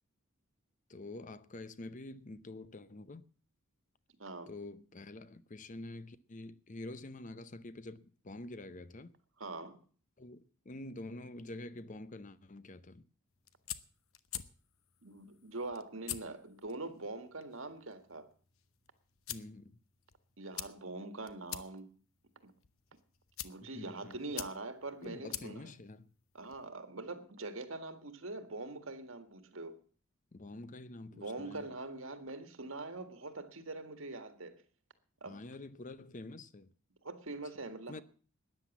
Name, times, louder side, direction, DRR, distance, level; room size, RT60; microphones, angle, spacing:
voice 1, 0.9-3.2 4.5-9.1 10.2-13.0 19.3-19.8 23.6-24.2 25.0-26.1 30.3-31.7 35.2-36.7 37.9-38.0, left 2 dB, 35° left, 0.7 m, -47 dB
voice 2, 4.2-4.5 9.4-9.8 15.0-18.3 20.4-21.9 22.4-22.5 23.4-25.6 26.3-29.8 31.1-34.6 35.2-35.4 37.0-38.0, right 2 dB, 70° right, 1.7 m, -43 dB
sound 1, 13.3-26.7, left 12 dB, 75° left, 0.9 m, -48 dB
13.5 x 10.0 x 7.2 m
head